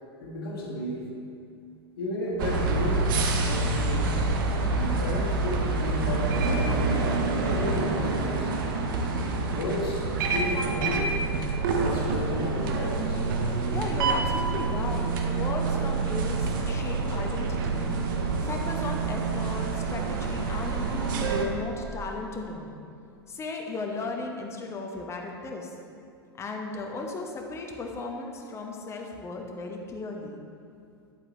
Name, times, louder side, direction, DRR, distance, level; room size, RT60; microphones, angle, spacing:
voice 1, 0.2-1.1 2.0-4.1 4.5-6.7 7.2-8.5 9.5-11.2 11.7-13.2, left 1 dB, 60° left, -3 dB, 1.6 m, -33 dB
sound 1, 2.4-21.5, right 3 dB, 50° right, 0.8 m, -27 dB
voice 2, 13.7-17.9 18.4-22.8 23.3-25.7 26.4-30.4, left 3 dB, 20° left, 1 dB, 1.0 m, -36 dB
9.4 x 7.8 x 3.0 m, 2.4 s
figure-of-eight pair, 90°, 14 cm